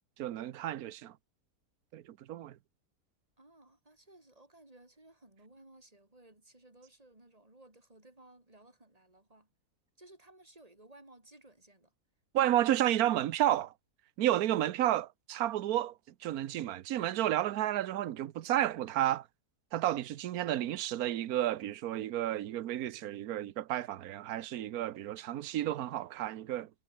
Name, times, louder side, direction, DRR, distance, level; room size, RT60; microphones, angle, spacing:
voice 1, 0.2-1.2 1.9-2.6 12.3-13.7 14.2-19.3 19.7-26.7, right 13 dB, 70° right, 1.3 m, -31 dB
voice 2, 3.4-9.5 10.0-11.9 12.4-12.5, right 2 dB, 20° right, 4.7 m, -58 dB
omnidirectional pair, 1.7 m